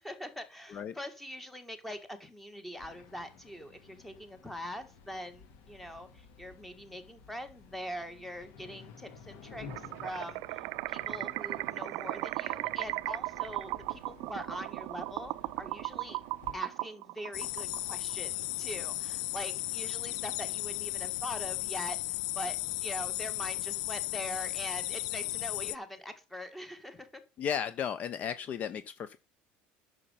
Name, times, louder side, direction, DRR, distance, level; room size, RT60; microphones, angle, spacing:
voice 1, 0.0-16.2 16.5-22.0 22.4-27.2, equal, 5° left, 9 dB, 1.7 m, -43 dB
sound 1, 2.8-16.6, left 5 dB, 60° left, 2.2 m, -53 dB
sound 2, 9.7-18.2, right 22 dB, 65° right, 0.4 m, -37 dB
sound 3, 17.3-25.8, left 19 dB, 90° left, 0.4 m, -35 dB
voice 2, 27.4-29.2, left 8 dB, 40° left, 14 dB, 0.7 m, -34 dB
11.0 x 6.5 x 5.6 m, 0.31 s
cardioid pair, 145°, 4 cm